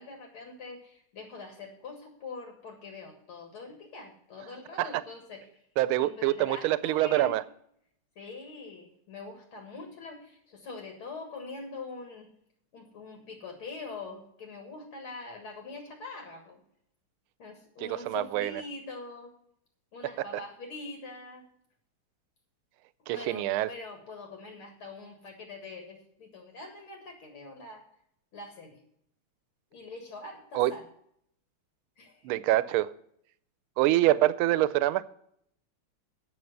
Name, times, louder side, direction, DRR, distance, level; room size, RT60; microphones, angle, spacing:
voice 1, 0.0-5.6 6.0-7.3 8.2-12.3 12.7-16.6 17.4-19.3 19.9-21.4 23.1-27.8 28.3-28.8 29.7-30.8 32.0-32.3, left 3 dB, 80° left, 3 dB, 2.6 m, -43 dB
voice 2, 5.8-7.4 17.8-18.5 23.1-23.7 30.5-30.7 32.2-32.9 33.8-35.0, right 15 dB, 85° right, 16 dB, 1.5 m, -25 dB
9.4 x 7.7 x 6.4 m, 0.71 s
omnidirectional pair, 2.3 m